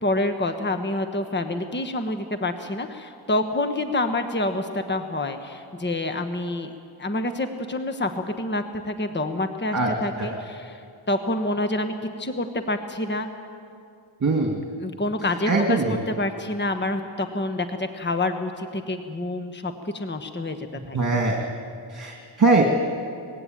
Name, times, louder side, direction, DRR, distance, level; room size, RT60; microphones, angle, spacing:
voice 1, 0.0-6.7 7.0-10.8 11.1-11.9 12.2-13.3 14.8-15.8 16.1-21.0, left 2 dB, 20° left, 7 dB, 1.3 m, -27 dB
voice 2, 14.2-14.6 15.5-16.0 20.9-21.4 21.9-22.6, right 3 dB, 40° right, 0 dB, 2.4 m, -21 dB
20.5 x 16.0 x 9.0 m, 2.4 s
cardioid pair, 60°, 49 cm